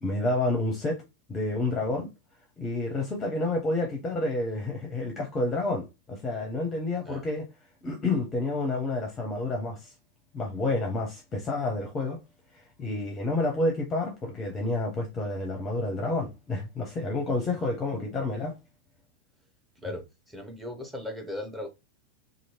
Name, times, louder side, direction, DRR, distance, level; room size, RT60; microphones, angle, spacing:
voice 1, 0.0-1.0 1.3-2.1 2.6-7.5 7.8-9.9 10.3-12.2 12.5-18.5, left 2 dB, 20° left, 0.7 m, -29 dB
voice 2, 19.8-21.7, left 1 dB, 5° right, 0.8 m, -37 dB
2.9 x 2.5 x 2.9 m
figure-of-eight pair, 90°, 0 cm